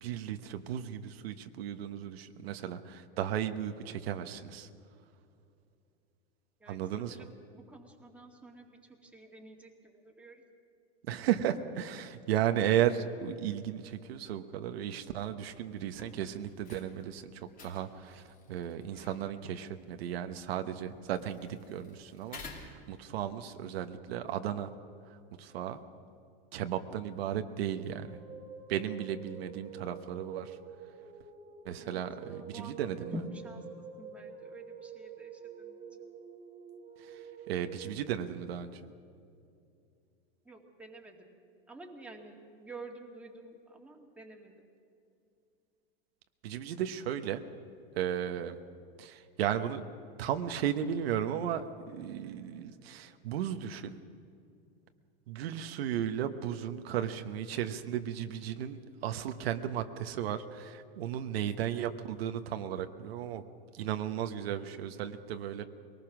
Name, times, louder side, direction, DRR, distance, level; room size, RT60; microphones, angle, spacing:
voice 1, 0.0-4.7 6.7-7.1 11.1-17.3 17.6-18.2 18.5-24.7 25.4-25.8 26.5-28.2 28.7-30.5 31.6-33.1 37.5-38.7 46.4-47.4 48.0-48.5 49.0-49.8 50.2-54.0 55.3-63.4 63.7-65.6, right 10 dB, 85° right, 8 dB, 1.2 m, -35 dB
voice 2, 6.6-10.4 31.8-36.1 40.4-41.3 41.7-44.7, right 1 dB, 5° right, 0 dB, 2.1 m, -48 dB
sound 1, 15.9-23.4, left 4 dB, 30° left, 2.8 m, -53 dB
sound 2, 27.7-37.9, right 6 dB, 20° right, 1.5 m, -48 dB
23.0 x 19.0 x 6.1 m, 2.6 s
supercardioid pair, 135°, 30 cm